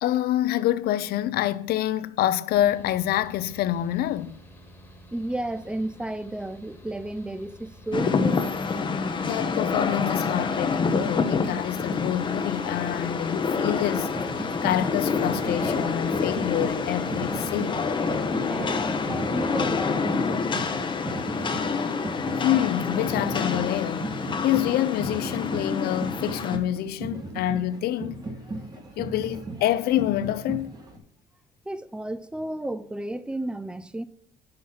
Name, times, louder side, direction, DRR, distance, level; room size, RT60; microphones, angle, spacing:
voice 1, 0.0-4.4 9.2-14.1 14.4-17.9 22.4-24.1 24.4-28.3 28.8-30.7, left 13 dB, 70° left, 0.4 m, -27 dB
Mechanical fan, 2.5-19.9, equal, 10° left, 1.4 m, -49 dB
voice 2, 5.1-8.5 18.5-20.9 31.7-34.0, right 1 dB, 5° right, 0.4 m, -33 dB
Rain, 7.9-26.6, left 5 dB, 30° left, 0.6 m, -27 dB
sound 1, 13.8-31.0, right 2 dB, 25° right, 1.2 m, -37 dB
6.4 x 4.4 x 5.5 m
cardioid pair, 110°, 17 cm